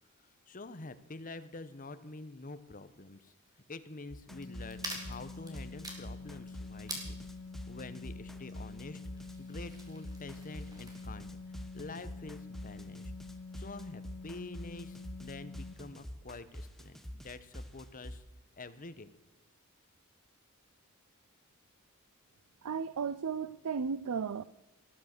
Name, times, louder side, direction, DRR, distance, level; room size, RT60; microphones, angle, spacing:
voice 1, 0.5-3.3 3.7-7.2 7.7-9.0 9.4-13.1 13.5-18.2 18.6-19.1, left 3 dB, 35° left, 11 dB, 1.0 m, -47 dB
sound 1, 4.1-18.2, equal, ahead, 1.1 m, -46 dB
sound 2, 4.3-15.7, left 3 dB, 75° left, 1.8 m, -47 dB
sound 3, 4.4-11.0, right 1 dB, 15° right, 3.2 m, -48 dB
voice 2, 22.6-24.4, right 6 dB, 85° right, 17 dB, 0.5 m, -34 dB
18.5 x 11.0 x 6.7 m, 1.0 s
head